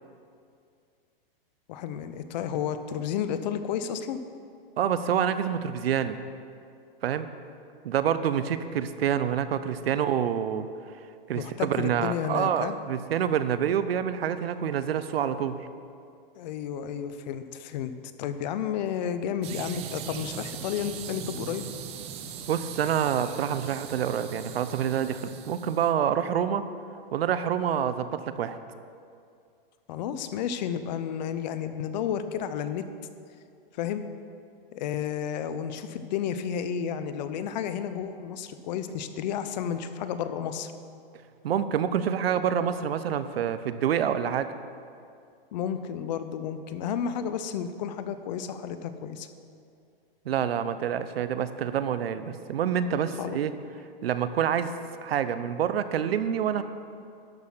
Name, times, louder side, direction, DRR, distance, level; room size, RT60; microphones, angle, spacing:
voice 1, 1.7-4.2 11.4-12.8 16.4-17.9 18.2-21.7 29.9-32.8 33.8-34.0 34.7-40.7 45.5-49.3 53.2-53.6, left 8 dB, 45° left, 11 dB, 0.7 m, -32 dB
voice 2, 4.8-6.2 7.0-7.3 7.8-10.7 11.3-15.6 22.5-26.6 27.1-28.6 41.4-44.5 50.3-53.5 54.0-54.7 55.0-56.6, right 9 dB, 80° right, 12 dB, 0.7 m, -27 dB
sound 1, 19.4-25.9, right 8 dB, 20° right, 0.5 m, -40 dB
12.0 x 6.3 x 5.7 m, 2.4 s
hypercardioid pair, 140°, 30 cm